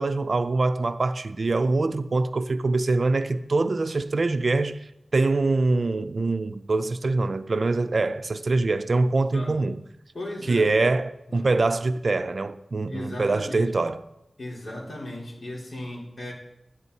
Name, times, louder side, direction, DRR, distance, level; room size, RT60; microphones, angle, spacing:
voice 1, 0.0-9.8 10.5-14.0, right 3 dB, 55° right, 0.5 m, -24 dB
voice 2, 9.3-9.7 10.1-10.8 11.3-11.5 12.9-13.7 14.4-16.3, left 1 dB, 50° left, 4.0 m, -36 dB
12.5 x 10.5 x 4.1 m
wide cardioid pair, 85°, 0 cm